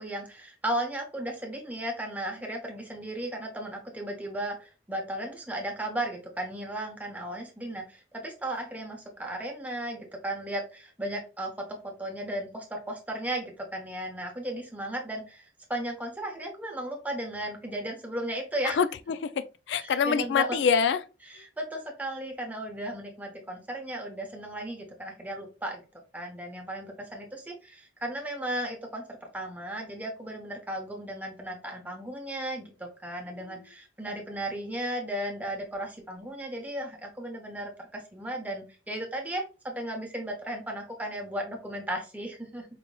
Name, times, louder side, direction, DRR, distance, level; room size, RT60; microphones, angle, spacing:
voice 1, 0.0-18.8 19.8-20.6 21.3-25.8 26.1-42.7, right 1 dB, 10° right, 0.9 m, -35 dB
voice 2, 18.6-21.0, left 6 dB, 80° left, 0.3 m, -26 dB
4.9 x 2.9 x 2.2 m
head